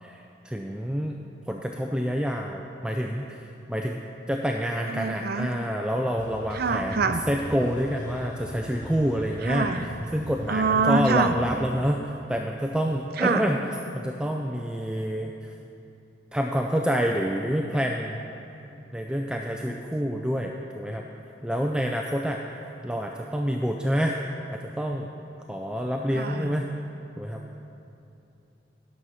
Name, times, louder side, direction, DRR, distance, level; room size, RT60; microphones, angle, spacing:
voice 1, 0.0-1.2 1.5-4.0 4.3-13.6 13.9-15.5 16.3-18.2 18.9-21.0 21.4-24.2 24.5-25.1 25.5-26.7 27.2-27.4, equal, 5° right, 1 dB, 0.3 m, -28 dB
voice 2, 4.9-5.5 6.5-7.2 9.4-9.9 10.5-11.3 13.2-13.4 26.1-26.6, right 4 dB, 55° right, 8 dB, 0.5 m, -25 dB
sound 1, 6.2-11.6, equal, 45° left, 0.9 m, -39 dB
10.5 x 6.4 x 5.6 m, 2.8 s
head